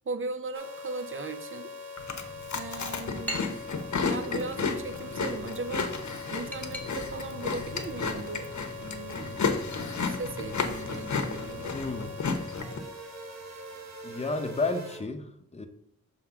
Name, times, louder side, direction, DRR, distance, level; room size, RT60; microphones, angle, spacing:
voice 1, 0.1-1.7 2.5-3.6 4.0-5.9 6.3-8.5 8.8-9.5 10.0-11.9, right 3 dB, 45° right, 10 dB, 0.7 m, -38 dB
sound 1, 0.5-15.0, left 3 dB, 65° right, 1.1 m, -42 dB
Chewing mastication, 2.0-12.8, left 4 dB, 75° left, 0.9 m, -33 dB
sound 2, 6.1-12.4, right 1 dB, 5° left, 1.2 m, -47 dB
voice 2, 11.7-12.1 14.0-15.7, left 3 dB, 20° left, 6 dB, 0.8 m, -32 dB
6.2 x 3.9 x 5.8 m, 0.71 s
wide cardioid pair, 95°, 29 cm